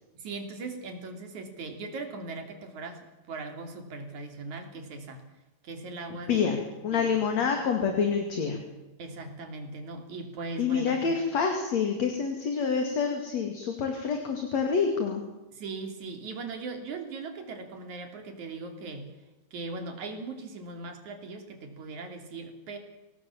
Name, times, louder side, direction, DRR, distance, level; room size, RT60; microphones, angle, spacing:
voice 1, 0.1-5.2 5.6-6.5 6.9-7.6 9.0-11.1 15.5-19.1 19.5-22.8, right 3 dB, 60° right, 5 dB, 4.3 m, -39 dB
voice 2, 6.3-6.6 6.8-8.6 10.6-15.2, left 6 dB, 55° left, 4 dB, 3.4 m, -27 dB
26.0 x 18.5 x 7.2 m, 1.1 s
omnidirectional pair, 3.9 m